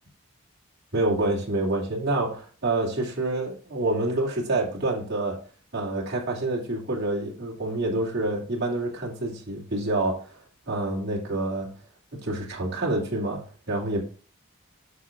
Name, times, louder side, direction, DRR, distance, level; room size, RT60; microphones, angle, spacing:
voice 1, 0.9-5.4 5.7-10.4 10.7-11.7 12.1-14.0, right 2 dB, 50° right, 2.6 m, -27 dB
9.9 x 6.8 x 2.5 m
head